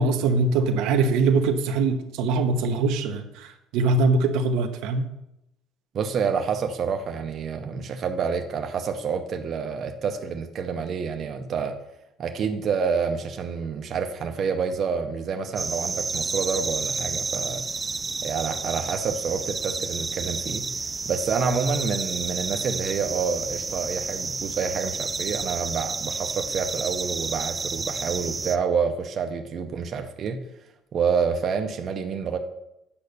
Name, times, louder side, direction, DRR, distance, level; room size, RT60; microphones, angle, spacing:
voice 1, 0.0-5.1, right 3 dB, 80° right, 6 dB, 1.0 m, -22 dB
voice 2, 5.9-11.8 12.2-17.7 18.2-20.7 21.1-30.4 30.9-32.4, right 6 dB, 35° right, 5 dB, 0.7 m, -28 dB
sound 1, 15.6-28.6, right 4 dB, 15° right, 0.3 m, -30 dB
8.7 x 5.4 x 6.6 m, 0.85 s
cardioid pair, 165°, 0 cm